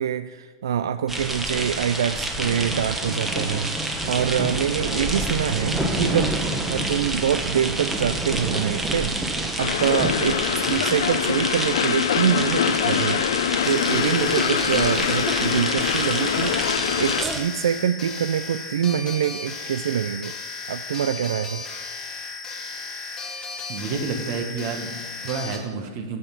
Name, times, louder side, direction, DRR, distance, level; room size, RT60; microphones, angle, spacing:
voice 1, 0.0-3.7 4.0-6.4 6.7-9.2 9.6-13.3 13.6-20.3 20.7-21.6, right 9 dB, 90° right, 11 dB, 0.4 m, -25 dB
sound 1, 1.1-17.4, right 1 dB, 10° right, 1.1 m, -28 dB
Train, 9.6-17.2, left 9 dB, 85° left, 0.5 m, -24 dB
sound 2, 13.6-25.6, left 4 dB, 20° left, 1.7 m, -35 dB
voice 2, 23.7-26.2, right 5 dB, 50° right, 5 dB, 1.6 m, -30 dB
9.6 x 7.1 x 6.1 m, 1.4 s
supercardioid pair, 140°, 2 cm